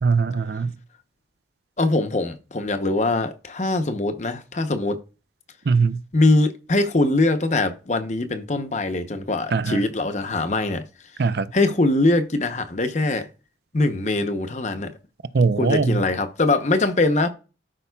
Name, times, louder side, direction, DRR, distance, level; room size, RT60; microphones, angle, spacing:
voice 1, 0.0-0.8 5.7-6.0 9.5-9.8 11.2-11.5 15.3-16.0, right 4 dB, 60° right, 0.5 m, -21 dB
voice 2, 1.8-5.0 6.1-10.8 11.5-13.3 13.7-14.9 15.6-17.3, left 2 dB, 40° left, 0.8 m, -22 dB
12.0 x 5.4 x 2.3 m
head